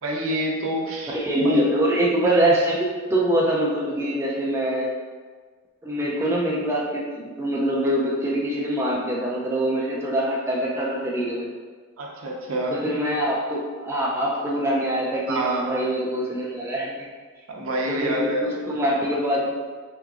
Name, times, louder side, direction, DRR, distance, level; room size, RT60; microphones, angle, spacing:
voice 1, 0.0-1.6 12.0-12.8 15.3-15.8 17.5-18.5, right 1 dB, 80° right, -2 dB, 0.6 m, -27 dB
voice 2, 1.1-4.9 5.8-11.5 12.7-17.1 17.9-19.5, right 1 dB, 10° right, -4 dB, 0.4 m, -24 dB
3.5 x 2.9 x 2.4 m, 1.5 s
head